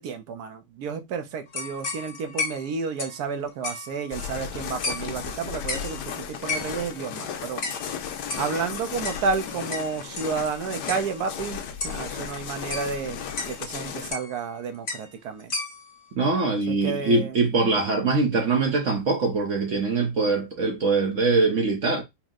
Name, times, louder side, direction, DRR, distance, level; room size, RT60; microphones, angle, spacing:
voice 1, 0.0-7.6 8.4-15.5 16.7-17.4, right 5 dB, 70° right, 1.2 m, -31 dB
sound 1, 1.5-4.5 4.8-5.3 5.7-6.0 6.5-7.0 7.6-7.9 8.3-10.6 10.9-11.1 11.4-11.5 11.8-12.1 12.7-13.6 14.1-14.5 14.9-15.1 15.4-16.0, left 3 dB, 45° left, 1.2 m, -34 dB
sound 2, 4.1-14.1, left 7 dB, 90° left, 1.3 m, -35 dB
voice 2, 16.2-22.0, right 3 dB, 55° right, 1.0 m, -23 dB
4.5 x 2.1 x 3.6 m
omnidirectional pair, 1.8 m